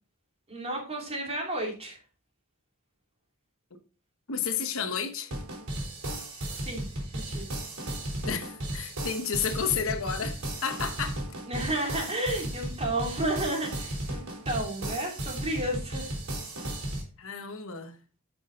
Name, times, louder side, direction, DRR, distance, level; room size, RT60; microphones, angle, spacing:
voice 1, 0.5-2.0 6.5-6.9 7.1-7.5 11.5-16.1, right 1 dB, 30° right, 2.8 m, -32 dB
voice 2, 4.3-5.3 8.2-11.2 17.2-17.9, left 6 dB, 65° left, 1.1 m, -31 dB
sound 1, 5.3-17.0, right 1 dB, 80° right, 3.5 m, -35 dB
10.5 x 6.3 x 3.9 m
head